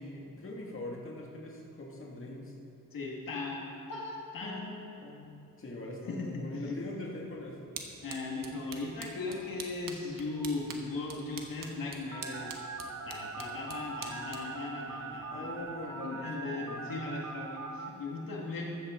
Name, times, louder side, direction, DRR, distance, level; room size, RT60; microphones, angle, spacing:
voice 1, 0.0-2.5 4.4-5.3 5.6-7.6 15.3-16.9, left 1 dB, 40° left, -2 dB, 1.9 m, -42 dB
voice 2, 2.9-4.7 6.1-7.0 8.0-12.5 13.1-18.6, left 3 dB, 75° left, -2 dB, 1.8 m, -38 dB
sound 1, 7.1-15.8, right 5 dB, 70° right, 1.3 m, -48 dB
Telephone, 12.1-17.9, right 4 dB, 50° right, 1.0 m, -41 dB
14.5 x 13.5 x 3.7 m, 2.8 s
wide cardioid pair, 130°, 34 cm